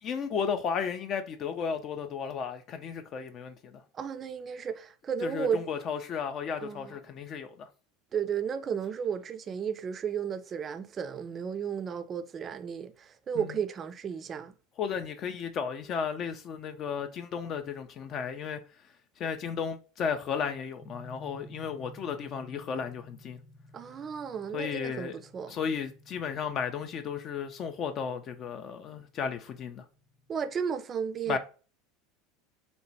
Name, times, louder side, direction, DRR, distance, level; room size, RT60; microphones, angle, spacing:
voice 1, 0.0-3.8 5.2-7.7 13.3-13.6 14.8-18.6 19.2-23.4 24.5-25.2 25.5-29.8 31.3-31.4, left 6 dB, 45° left, 0.3 m, -34 dB
voice 2, 3.9-5.6 6.6-6.9 8.1-14.5 23.7-25.6 30.3-31.4, right 7 dB, 35° right, 0.3 m, -33 dB
sound 1, 20.8-30.5, equal, 20° left, 0.8 m, -54 dB
2.9 x 2.1 x 2.6 m
hypercardioid pair, 85°, 0 cm